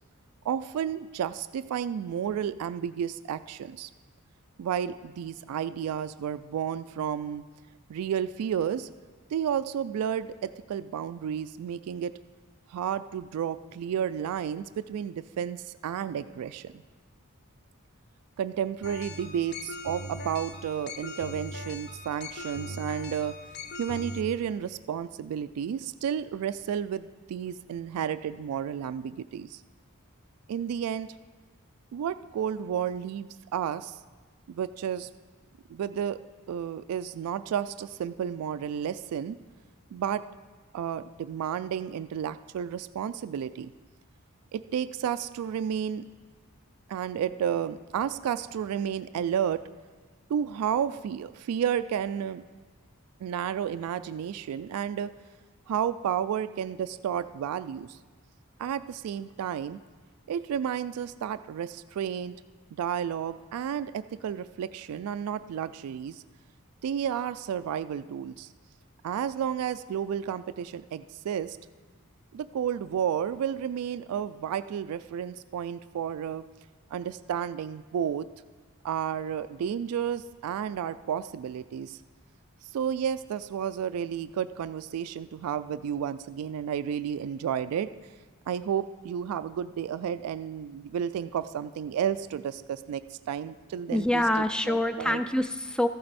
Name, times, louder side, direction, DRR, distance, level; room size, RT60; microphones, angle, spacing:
voice 1, 0.4-3.9 4.6-7.4 7.9-8.9 9.3-12.1 12.7-16.8 18.4-23.3 23.8-29.6 30.5-31.1 31.9-34.0 34.5-35.1 35.7-36.2 36.5-39.4 39.9-40.2 40.7-43.7 44.5-46.0 46.9-49.6 50.3-52.4 53.2-55.1 55.7-58.0 58.6-59.8 60.3-62.4 62.8-66.2 66.8-68.5 69.0-71.6 72.3-76.4 76.9-78.3 78.8-82.0 82.7-87.9 88.5-94.2 94.7-95.2, right 8 dB, 85° right, 15 dB, 0.3 m, -32 dB
sound 1, 18.8-24.2, left 2 dB, 50° left, 0.6 m, -40 dB
voice 2, 93.9-95.9, left 1 dB, 5° left, 10 dB, 0.3 m, -26 dB
13.5 x 7.6 x 4.2 m, 1.4 s
head